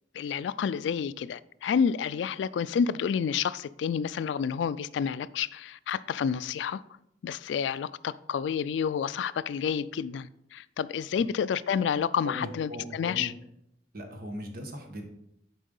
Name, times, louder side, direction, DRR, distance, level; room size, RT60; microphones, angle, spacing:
voice 1, 0.2-6.8 7.2-13.3, left 7 dB, 75° left, 0.3 m, -29 dB
voice 2, 12.2-13.3 13.9-15.0, left 1 dB, 55° right, 1.3 m, -39 dB
7.3 x 4.6 x 5.3 m
head